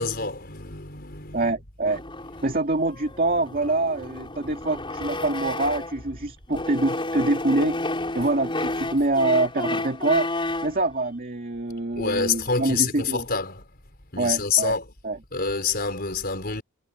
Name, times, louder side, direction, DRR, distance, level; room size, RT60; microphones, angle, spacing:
voice 1, 0.0-1.5 12.0-13.6 14.1-14.9 15.3-16.6, left 5 dB, 45° left, 4.7 m, -27 dB
voice 2, 1.3-2.0 2.4-7.8 8.1-10.3 10.6-13.3 14.2-14.7 15.0-15.2, right 2 dB, 40° right, 2.4 m, -25 dB
sound 1, 1.9-6.1 6.5-10.8, left 2 dB, 20° left, 5.9 m, -31 dB
head